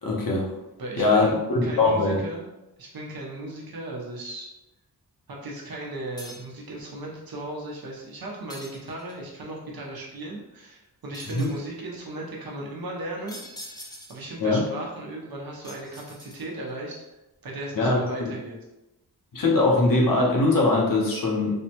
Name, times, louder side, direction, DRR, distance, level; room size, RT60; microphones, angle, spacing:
voice 1, 0.0-0.5 1.0-2.2 11.3-11.5 14.4-14.6 17.7-18.3 19.3-21.6, left 2 dB, 60° left, -2 dB, 0.8 m, -22 dB
voice 2, 0.8-1.4 1.6-2.5 2.8-4.5 5.3-13.4 14.1-16.9 17.4-18.6, right 2 dB, 70° right, -2 dB, 0.9 m, -36 dB
sound 1, 6.2-6.6 8.5-9.3 11.1-11.7 13.3-14.3 15.6-16.7, left 1 dB, 10° left, 0.4 m, -44 dB
3.5 x 2.2 x 2.9 m, 0.97 s
wide cardioid pair, 125°, 38 cm